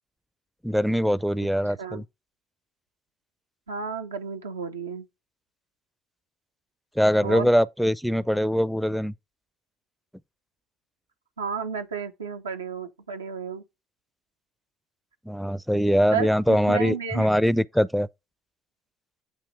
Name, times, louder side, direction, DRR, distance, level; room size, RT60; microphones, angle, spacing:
voice 1, 0.6-2.0 7.0-9.1 15.3-18.1, equal, ahead, 0.4 m, -22 dB
voice 2, 1.7-2.0 3.7-5.0 7.2-7.5 11.4-13.6 16.1-17.3, right 6 dB, 90° right, 0.6 m, -32 dB
8.1 x 2.9 x 5.6 m
hypercardioid pair, 55°, 0 cm